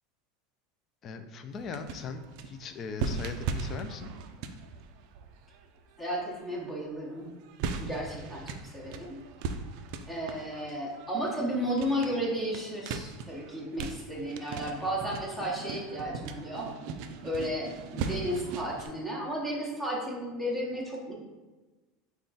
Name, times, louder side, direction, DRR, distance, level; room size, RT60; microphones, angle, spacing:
voice 1, 1.0-4.1, left 5 dB, 35° left, 8 dB, 0.4 m, -39 dB
sound 1, 1.5-6.7 7.2-18.9, right 5 dB, 60° right, 0.3 m, -39 dB
voice 2, 6.0-7.3 7.8-9.2 10.1-16.7 17.2-21.1, equal, 10° left, -4 dB, 0.9 m, -33 dB
3.6 x 2.3 x 3.9 m, 1.2 s
supercardioid pair, 120°, 0 cm